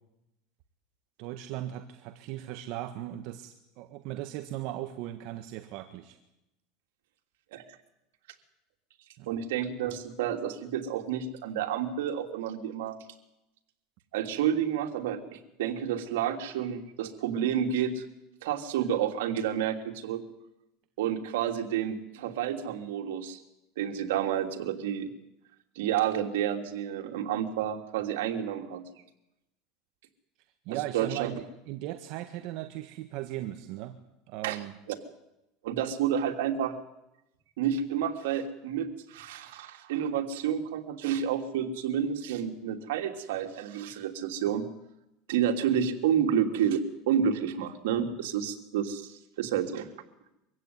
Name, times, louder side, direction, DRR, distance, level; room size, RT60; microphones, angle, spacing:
voice 1, 1.2-6.2 9.2-9.3 30.7-34.0 34.3-34.7, right 14 dB, 55° right, 7 dB, 1.6 m, -38 dB
voice 2, 9.3-13.0 14.1-18.1 18.4-20.2 21.0-23.4 23.8-25.1 25.7-28.8 30.7-31.3 34.4-34.6 34.9-35.0 35.6-36.8 37.6-44.6 45.3-49.9, right 9 dB, 85° right, 5 dB, 3.0 m, -30 dB
24.0 x 16.0 x 9.6 m, 0.89 s
supercardioid pair, 150°, 0 cm